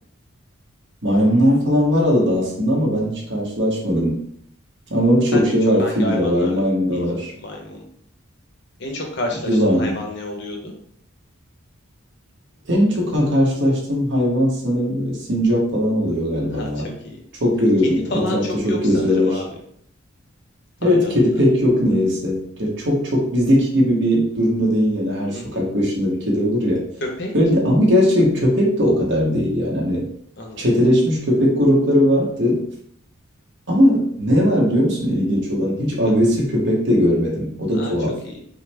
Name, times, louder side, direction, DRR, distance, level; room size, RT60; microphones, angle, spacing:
voice 1, 1.0-4.2 4.9-7.3 9.4-10.0 12.7-16.9 17.4-19.4 20.8-26.8 27.3-30.1 30.6-32.6 33.7-38.2, equal, 55° right, -3 dB, 1.2 m, -19 dB
voice 2, 5.3-6.6 6.9-7.1 7.4-7.8 8.8-10.7 16.5-16.7 17.0-17.2 17.8-19.5 20.8-21.1 25.3-25.6 27.2-27.3 30.4-30.6 37.7-37.9, left 1 dB, 55° left, 1 dB, 0.9 m, -29 dB
5.6 x 2.1 x 3.4 m, 0.68 s
head